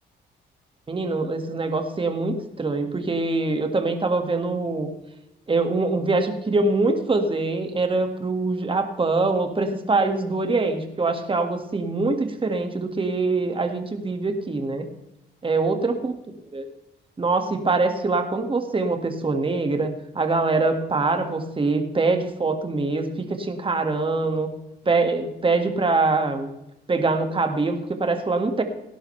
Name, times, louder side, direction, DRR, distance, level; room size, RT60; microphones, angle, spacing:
voice 1, 0.9-4.9 5.5-14.9 15.4-16.1 16.5-16.6 17.2-24.5 24.9-26.5 26.9-28.6, right 3 dB, 25° right, 6 dB, 2.0 m, -24 dB
17.5 x 11.5 x 3.4 m, 0.90 s
cardioid pair, 90°, 20 cm